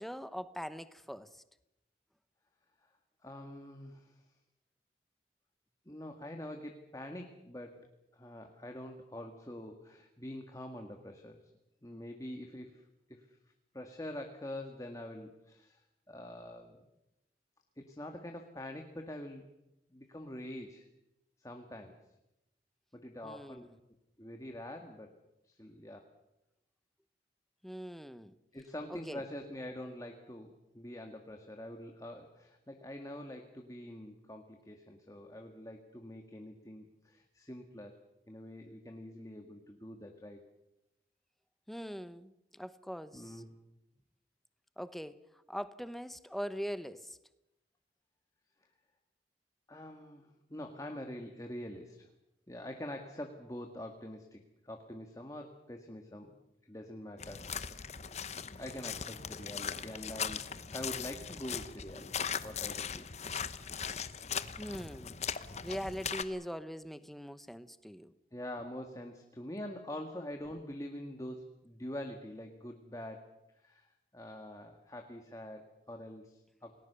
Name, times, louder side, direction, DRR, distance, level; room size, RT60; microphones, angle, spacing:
voice 1, 0.0-1.4 23.2-23.7 27.6-28.3 28.9-29.2 41.7-43.4 44.8-45.2 45.5-47.2 64.6-65.2 65.6-68.1, equal, ahead, 0.8 m, -42 dB
voice 2, 3.2-4.2 5.9-11.4 11.8-12.8 13.1-13.4 13.7-16.8 17.8-19.4 19.9-20.9 21.4-22.0 22.9-23.7 24.2-25.1 25.4-26.1 28.5-38.0 38.3-40.4 43.1-43.5 49.7-52.1 52.5-54.4 54.6-56.4 56.6-57.4 57.7-57.9 58.6-60.4 60.7-63.2 68.3-73.3 73.6-76.7, left 1 dB, 20° left, 1.8 m, -45 dB
sound 1, 57.2-66.2, left 7 dB, 40° left, 1.0 m, -39 dB
29.0 x 19.0 x 6.9 m
head